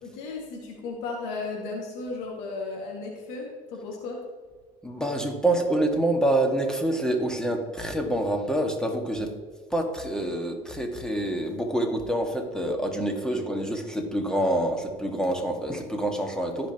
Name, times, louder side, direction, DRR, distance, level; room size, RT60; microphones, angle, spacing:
voice 1, 0.0-4.2 13.3-13.4, left 3 dB, 80° left, -2 dB, 2.0 m, -35 dB
voice 2, 4.8-9.4 9.7-16.7, right 1 dB, 5° left, 3 dB, 1.8 m, -27 dB
14.5 x 5.3 x 3.0 m, 1.5 s
supercardioid pair, 75°, 20 cm